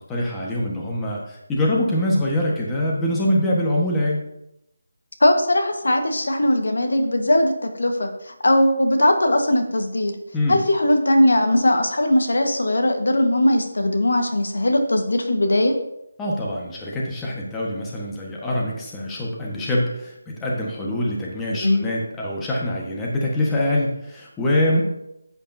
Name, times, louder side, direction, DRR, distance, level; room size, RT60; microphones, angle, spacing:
voice 1, 0.0-4.3 10.3-10.6 16.2-24.8, left 1 dB, 10° left, -4 dB, 1.3 m, -24 dB
voice 2, 5.2-10.2 10.5-15.7 21.6-21.9, left 1 dB, 75° left, 5 dB, 1.4 m, -19 dB
9.9 x 8.4 x 2.7 m, 0.83 s
figure-of-eight pair, 165°, 0 cm